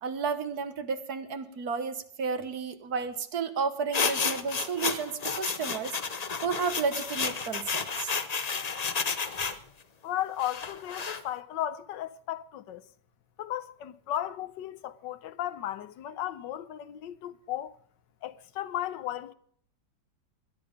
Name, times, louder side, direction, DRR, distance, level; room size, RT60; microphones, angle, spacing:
voice 1, 0.0-6.0 6.4-8.1, right 5 dB, 60° right, 1.6 m, -32 dB
sound 1, 3.9-9.6 10.4-11.2, left 5 dB, 45° left, 0.5 m, -31 dB
voice 2, 10.0-12.8 13.4-17.8 18.2-19.3, left 12 dB, 85° left, 1.5 m, -35 dB
20.0 x 10.5 x 5.2 m
omnidirectional pair, 1.9 m